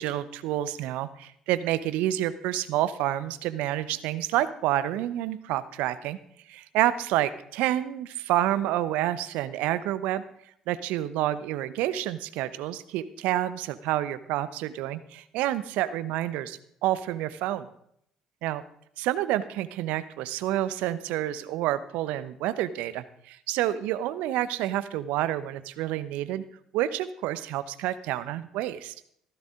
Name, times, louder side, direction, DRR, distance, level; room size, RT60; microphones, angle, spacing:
voice 1, 0.0-6.2 6.5-10.2 10.7-17.7 18.4-18.6 19.0-26.4 26.7-28.9, right 13 dB, 70° right, 14 dB, 0.9 m, -28 dB
16.0 x 14.5 x 3.8 m, 0.70 s
hypercardioid pair, 50°, 3 cm